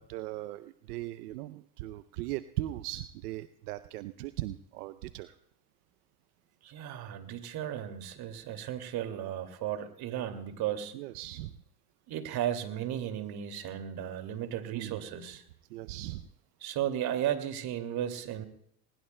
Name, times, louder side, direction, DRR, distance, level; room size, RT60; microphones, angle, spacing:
voice 1, 0.0-5.3 10.9-11.5 14.7-15.0 15.7-16.2, right 16 dB, 90° right, 12 dB, 0.7 m, -38 dB
voice 2, 6.6-10.9 12.1-15.4 16.6-18.5, right 10 dB, 55° right, 7 dB, 2.4 m, -35 dB
20.5 x 20.0 x 2.2 m, 0.73 s
supercardioid pair, 95°, 44 cm